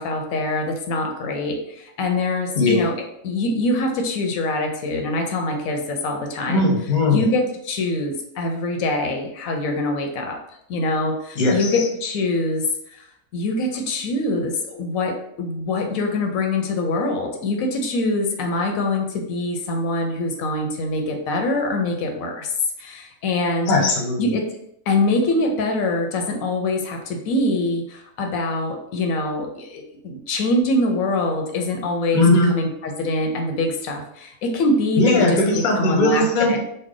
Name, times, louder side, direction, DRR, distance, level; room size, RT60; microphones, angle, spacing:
voice 1, 0.0-2.9 3.2-6.7 7.1-10.4 10.7-12.6 12.9-13.1 13.3-22.5 22.8-23.7 24.2-24.4 24.9-36.6, left 2 dB, 85° left, 3 dB, 1.0 m, -24 dB
voice 2, 2.6-2.9 6.5-7.3 11.4-11.8 23.7-24.2 32.1-32.5 35.0-36.6, left 2 dB, 45° left, 0 dB, 0.7 m, -18 dB
3.2 x 2.1 x 3.6 m, 0.76 s
omnidirectional pair, 1.4 m